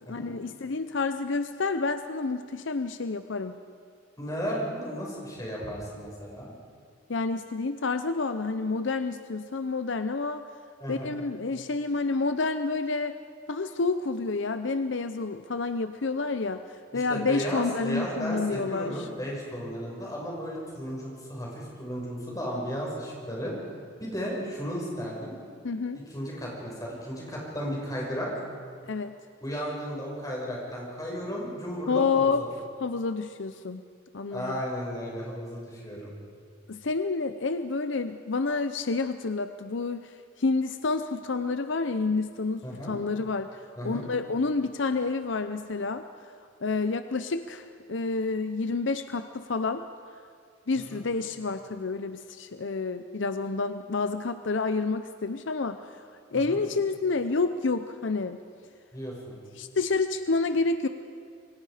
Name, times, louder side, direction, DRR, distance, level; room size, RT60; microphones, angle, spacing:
voice 1, 0.1-3.6 7.1-10.4 10.9-13.2 13.5-19.1 25.6-26.0 28.9-29.2 31.9-32.4 32.8-33.8 34.1-34.6 36.7-46.0 46.6-49.8 50.7-56.0 56.3-58.4 59.6-60.9, left 3 dB, 70° left, 9 dB, 0.7 m, -29 dB
voice 2, 4.2-6.5 10.8-11.1 16.9-23.5 24.0-25.4 26.1-28.3 29.4-32.3 34.3-36.1 42.6-43.0 43.8-44.1 50.7-51.0 56.3-56.6 58.9-59.4, equal, 20° left, -3 dB, 5.9 m, -34 dB
27.5 x 23.5 x 5.0 m, 2.2 s
head